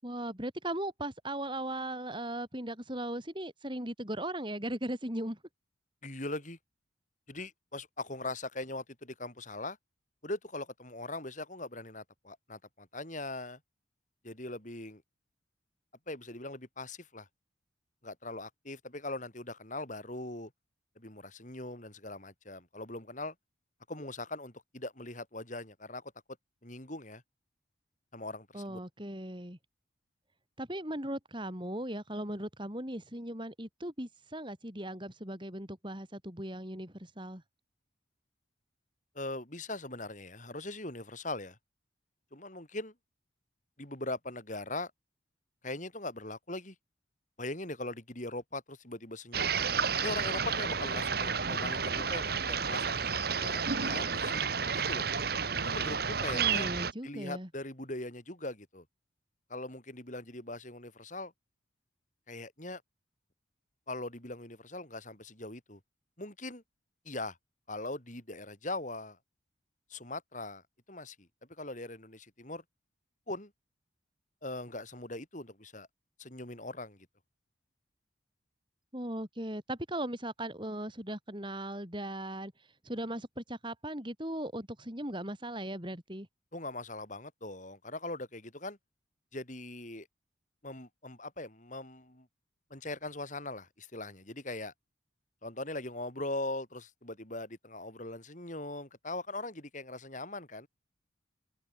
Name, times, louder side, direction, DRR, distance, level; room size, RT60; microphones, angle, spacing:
voice 1, 0.0-5.4 28.5-29.6 30.6-37.4 56.3-57.5 78.9-82.5 82.8-86.3, right 1 dB, 25° right, 6.8 m, -38 dB
voice 2, 6.0-6.6 7.3-9.8 10.2-13.6 14.2-15.0 16.1-17.3 18.0-20.5 21.0-23.3 23.9-26.0 26.6-27.2 28.1-28.8 39.1-41.6 42.3-42.9 43.8-44.9 45.6-46.7 47.4-49.5 50.0-52.9 53.3-54.4 54.7-55.1 55.6-56.7 57.0-58.8 59.5-61.3 62.3-62.8 63.9-65.8 66.2-66.6 67.0-67.4 67.7-69.2 69.9-70.6 70.9-71.3 71.6-72.6 73.3-73.5 74.4-75.9 76.2-77.1 86.5-88.8 89.3-90.1 90.6-92.3 92.7-94.7 95.4-100.7, left 2 dB, 40° left, 4.9 m, -40 dB
sound 1, 49.3-56.9, right 6 dB, 50° right, 1.6 m, -31 dB
head